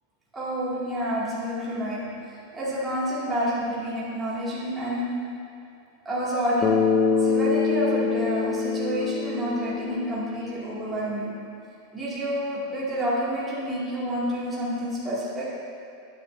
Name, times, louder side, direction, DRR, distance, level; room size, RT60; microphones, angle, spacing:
voice 1, 0.3-5.1 6.0-6.7 7.2-11.3 11.9-15.4, equal, 10° right, -10 dB, 2.2 m, -29 dB
Bass guitar, 6.6-10.8, left 5 dB, 25° left, 0.6 m, -25 dB
12.0 x 9.6 x 2.7 m, 2.5 s
supercardioid pair, 165°, 0 cm